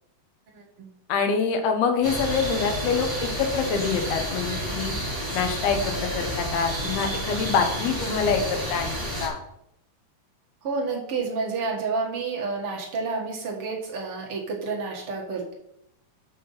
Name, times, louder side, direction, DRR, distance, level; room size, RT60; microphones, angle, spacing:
voice 1, 0.5-0.9 10.6-15.5, right 4 dB, 50° right, -1 dB, 2.0 m, -30 dB
voice 2, 1.1-4.9 5.3-8.9 9.2-9.4, left 5 dB, 80° left, 5 dB, 3.1 m, -25 dB
sound 1, 2.0-9.3, equal, 5° right, 3.0 m, -30 dB
7.4 x 5.9 x 5.6 m, 0.77 s
omnidirectional pair, 4.4 m